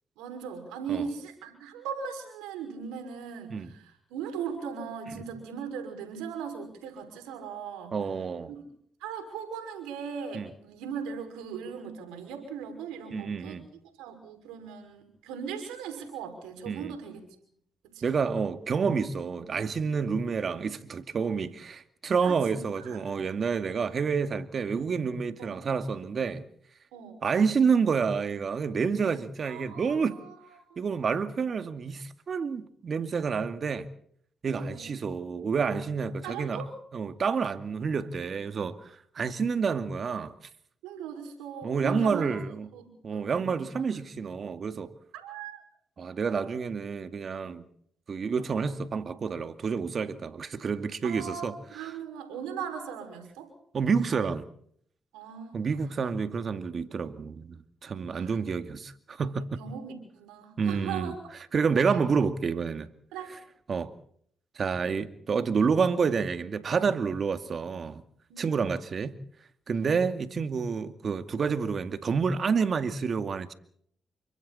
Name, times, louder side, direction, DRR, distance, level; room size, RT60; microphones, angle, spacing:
voice 1, 0.2-8.0 8.5-8.6 9.0-13.6 14.0-17.2 17.8-18.2 22.2-23.0 25.4-25.6 26.9-27.2 29.4-30.8 34.5-34.8 36.2-36.7 40.8-42.3 42.7-43.6 45.1-45.6 51.0-53.5 55.1-55.8 58.1-58.4 59.6-61.2 63.1-63.3 68.3-68.7 69.7-70.0, right 7 dB, 90° right, 5.8 m, -39 dB
voice 2, 7.9-8.5 10.3-10.5 13.1-13.7 16.7-17.0 18.0-26.4 27.2-30.2 30.8-33.9 34.4-36.6 36.9-40.3 41.6-42.7 43.0-44.9 46.0-47.7 48.1-51.5 51.8-52.0 53.7-54.5 55.5-59.6 60.6-61.1 61.5-62.9 63.7-63.9 64.6-68.0 68.4-69.2 69.7-73.5, right 5 dB, 55° right, 2.2 m, -29 dB
29.5 x 25.0 x 4.3 m
supercardioid pair, 50°, 0 cm